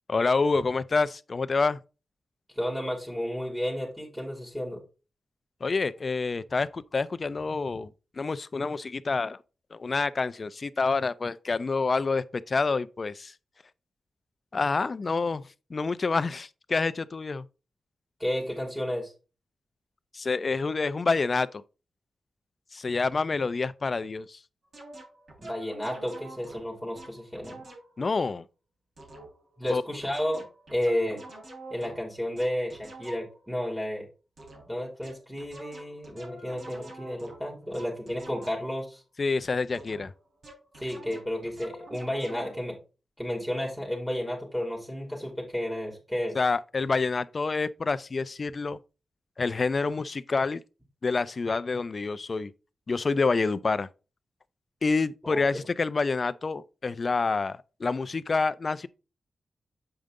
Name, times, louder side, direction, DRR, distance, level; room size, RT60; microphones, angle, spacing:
voice 1, 0.1-1.8 5.6-9.4 9.7-13.3 14.5-17.4 20.1-21.6 22.7-24.4 28.0-28.4 29.7-29.8 39.2-40.1 46.3-48.8 49.4-50.6 51.0-52.5 52.9-53.9 54.8-58.9, left 4 dB, 45° left, 0.5 m, -27 dB
voice 2, 2.5-4.8 18.2-19.1 25.4-27.6 29.6-30.5 30.7-31.2 31.7-34.1 34.6-39.0 40.8-42.8 43.2-46.4 55.2-55.6, equal, 5° right, 3.0 m, -32 dB
sound 1, 24.7-28.0 29.0-33.5 34.4-34.8 35.0-38.8 39.7-42.6, right 2 dB, 70° right, 3.6 m, -47 dB
7.9 x 5.2 x 3.7 m
cardioid pair, 65°, 0 cm